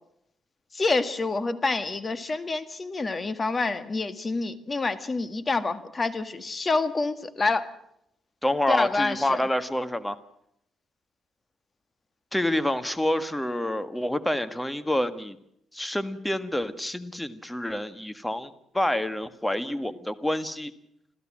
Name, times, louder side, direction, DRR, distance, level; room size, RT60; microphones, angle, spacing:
voice 1, 0.7-7.7 8.7-9.4, left 3 dB, 30° left, 12 dB, 1.8 m, -27 dB
voice 2, 8.4-10.2 12.3-15.4 15.7-20.7, left 1 dB, 10° left, 12 dB, 1.6 m, -28 dB
27.0 x 15.0 x 7.5 m, 0.76 s
cardioid pair, 90°, 0 cm